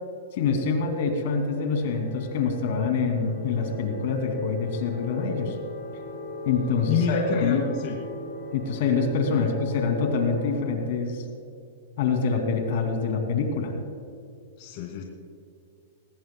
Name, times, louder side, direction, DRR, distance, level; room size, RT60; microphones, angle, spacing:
voice 1, 0.3-5.6 6.4-7.7 8.5-11.2 12.0-13.7, left 5 dB, 60° left, 4 dB, 2.5 m, -25 dB
sound 1, 1.2-10.7, left 1 dB, 80° left, 4.3 m, -39 dB
voice 2, 6.9-8.0 9.3-9.5 14.6-15.0, left 7 dB, 45° left, -1 dB, 2.2 m, -28 dB
20.5 x 19.5 x 2.3 m, 2.4 s
hypercardioid pair, 140°, 0 cm